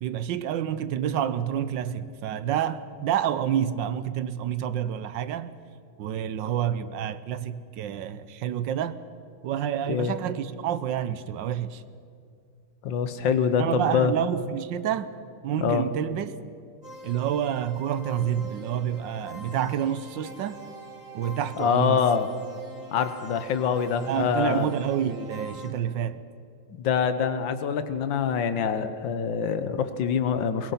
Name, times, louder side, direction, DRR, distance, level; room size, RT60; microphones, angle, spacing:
voice 1, 0.0-5.5 6.0-9.0 9.4-11.8 13.6-16.4 17.0-20.6 21.1-22.0 24.1-26.2, right 9 dB, 85° right, 1.4 m, -28 dB
voice 2, 12.8-14.1 15.6-15.8 21.6-22.3 22.9-24.7 26.8-30.7, left 7 dB, 90° left, 1.7 m, -25 dB
sound 1, 16.8-25.7, right 1 dB, 25° right, 4.5 m, -43 dB
22.5 x 21.0 x 5.8 m
omnidirectional pair, 2.0 m